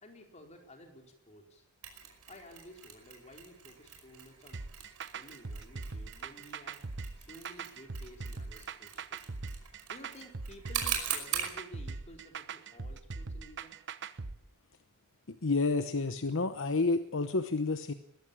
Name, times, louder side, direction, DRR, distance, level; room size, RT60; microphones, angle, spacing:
voice 1, 0.0-1.6 2.3-4.6 5.1-6.8 7.2-9.2 9.9-13.7, equal, 30° left, 3 dB, 4.3 m, -53 dB
Mechanisms, 1.8-11.6, right 9 dB, 90° right, 5.4 m, -41 dB
sound 1, 4.5-14.3, right 4 dB, 55° right, 1.0 m, -41 dB
voice 2, 15.3-17.9, left 3 dB, 60° left, 10 dB, 1.0 m, -30 dB
21.5 x 15.0 x 8.7 m, 0.75 s
head